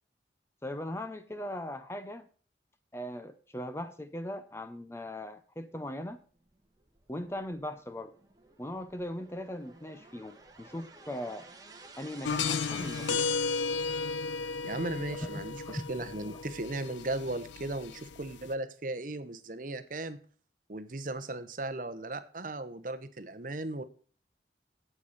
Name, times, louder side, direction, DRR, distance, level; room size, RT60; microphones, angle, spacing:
voice 1, 0.6-2.3 2.9-6.2 7.1-8.1 8.6-11.5 12.0-13.3 15.2-15.9, left 1 dB, 15° left, 0.6 m, -39 dB
sound 1, 6.4-13.4, right 4 dB, 20° right, 1.4 m, -52 dB
sound 2, 12.2-18.5, left 5 dB, 85° left, 0.6 m, -34 dB
voice 2, 14.6-20.2 20.7-23.8, right 2 dB, 45° right, 0.9 m, -37 dB
8.4 x 8.2 x 4.0 m
head